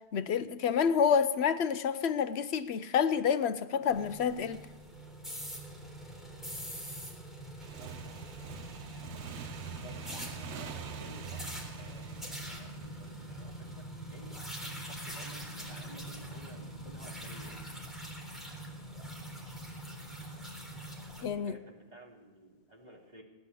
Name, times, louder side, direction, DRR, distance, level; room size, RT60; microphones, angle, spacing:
voice 1, 0.1-4.6 21.2-21.6, left 7 dB, 70° left, 1.0 m, -28 dB
sound 1, 3.8-21.2, right 1 dB, ahead, 3.6 m, -43 dB
Motorcycle / Engine, 7.6-14.0, right 9 dB, 80° right, 1.1 m, -46 dB
voice 2, 7.7-8.2 9.8-11.4 11.7-17.7 21.2-23.2, right 1 dB, 40° right, 2.8 m, -54 dB
17.5 x 9.7 x 8.4 m
omnidirectional pair, 1.1 m